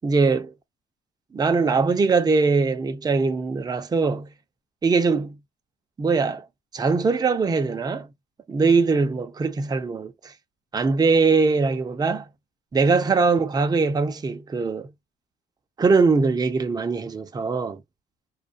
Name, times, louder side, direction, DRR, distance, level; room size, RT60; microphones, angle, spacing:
voice 1, 0.0-0.5 1.3-4.3 4.8-5.4 6.0-6.5 6.7-8.1 8.5-10.3 10.7-12.3 12.7-14.9 15.8-17.8, right 4 dB, 20° right, 0.5 m, -21 dB
2.3 x 2.2 x 2.5 m
cardioid pair, 110°, 21 cm